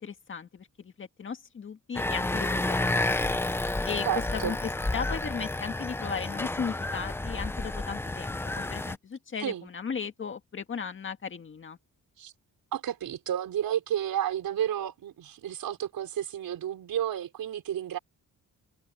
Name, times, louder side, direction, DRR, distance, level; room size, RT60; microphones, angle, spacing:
voice 1, 0.0-3.4 3.8-4.1 4.3-11.8, left 6 dB, 35° left, 1.9 m, -36 dB
sound 1, 1.9-8.9, left 2 dB, 5° left, 0.4 m, -30 dB
voice 2, 4.0-4.6 9.4-9.7 12.2-12.3 12.7-18.0, right 10 dB, 90° right, 5.2 m, -31 dB
wide cardioid pair, 170°, 34 cm